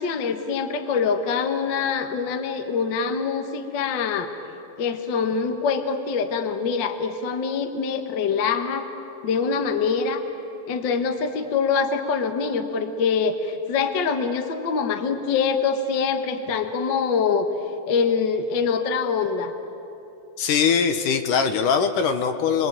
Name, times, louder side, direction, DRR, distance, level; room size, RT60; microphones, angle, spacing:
voice 1, 0.0-4.3 4.8-8.9 9.2-10.2 10.7-17.5 17.9-19.5, left 5 dB, 45° left, 6 dB, 1.5 m, -24 dB
voice 2, 20.4-22.7, left 6 dB, 70° left, 7 dB, 2.5 m, -21 dB
29.5 x 21.5 x 9.2 m, 2.9 s
omnidirectional pair, 4.1 m